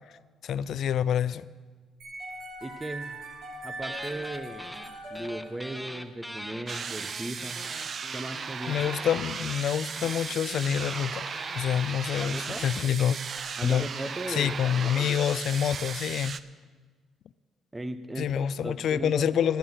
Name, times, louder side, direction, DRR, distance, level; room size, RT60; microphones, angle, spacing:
voice 1, 0.4-1.4 8.7-11.2 11.5-13.2 13.6-13.9 14.3-16.4 18.2-19.6, left 9 dB, 65° left, 0.3 m, -27 dB
sound 1, 2.0-6.1, right 1 dB, 70° right, 3.3 m, -41 dB
voice 2, 2.6-3.2 3.6-4.7 5.1-7.6 8.1-8.9 12.2-12.7 13.6-14.6 15.0-15.2 17.7-19.6, right 1 dB, 20° right, 1.0 m, -37 dB
sound 2, 3.8-4.9 5.1-13.4, equal, ahead, 0.9 m, -42 dB
sound 3, 6.7-16.4, right 6 dB, 55° right, 0.5 m, -36 dB
10.0 x 9.7 x 7.3 m
supercardioid pair, 60°, 0 cm